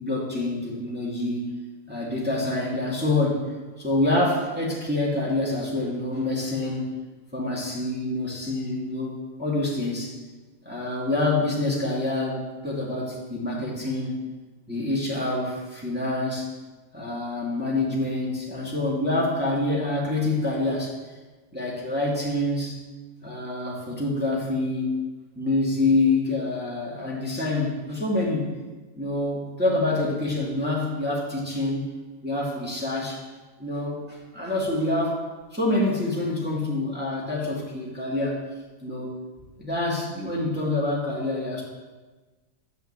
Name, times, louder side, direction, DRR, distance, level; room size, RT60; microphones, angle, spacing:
voice 1, 0.0-1.6 1.9-3.4 3.8-6.9 7.3-10.2 10.6-14.2 14.7-16.5 16.9-20.9 21.5-22.8 23.2-25.0 25.4-28.5 29.0-31.9 32.2-33.2 33.6-35.2 35.5-38.4 38.8-39.2 39.6-41.6, left 2 dB, 5° right, -5 dB, 2.3 m, -26 dB
10.0 x 7.2 x 7.4 m, 1.3 s
omnidirectional pair, 1.6 m